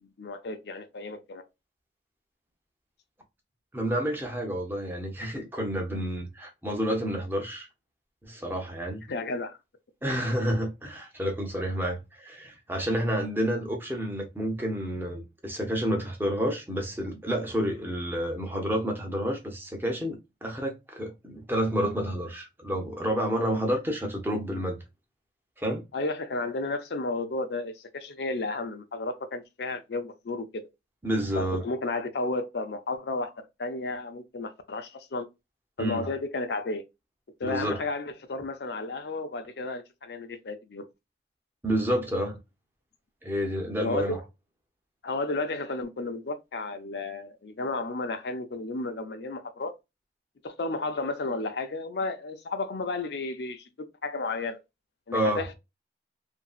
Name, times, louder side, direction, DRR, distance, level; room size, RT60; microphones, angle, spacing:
voice 1, 0.2-1.4 9.1-9.6 25.9-30.4 31.3-35.3 35.8-36.8 37.4-40.9 43.8-44.2 45.0-49.7 50.4-53.7 54.0-54.6 55.1-55.5, left 3 dB, 70° left, 0.5 m, -32 dB
voice 2, 3.7-7.7 8.2-9.0 10.0-24.8 25.6-25.8 31.0-31.6 35.8-36.1 37.4-37.8 41.6-42.4 43.2-44.2 55.1-55.4, equal, 10° right, 0.7 m, -29 dB
2.9 x 2.6 x 2.3 m
head